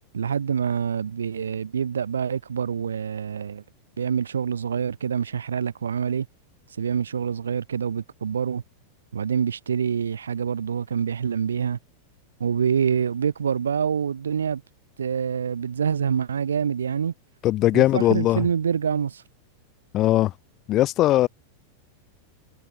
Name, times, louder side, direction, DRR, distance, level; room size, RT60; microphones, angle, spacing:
voice 1, 0.1-3.6 4.0-6.3 6.8-8.6 9.1-11.8 12.4-14.6 15.0-17.1 17.7-19.2, right 7 dB, 70° right, 0.6 m, -26 dB
voice 2, 17.4-18.5 19.9-20.3 20.7-21.3, left 15 dB, 35° left, 0.5 m, -19 dB
figure-of-eight pair, 90°, 0 cm